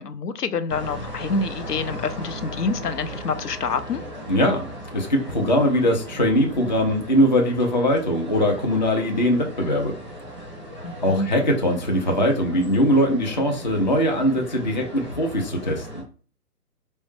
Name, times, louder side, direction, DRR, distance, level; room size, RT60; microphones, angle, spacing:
voice 1, 0.0-4.0 10.8-11.3, left 4 dB, 80° left, 10 dB, 0.6 m, -27 dB
sound 1, 0.7-16.0, equal, 5° left, 0.9 m, -37 dB
voice 2, 4.3-10.0 11.0-16.0, equal, 30° left, 2 dB, 0.4 m, -21 dB
4.4 x 2.1 x 3.1 m, 0.38 s
figure-of-eight pair, 135°, 47 cm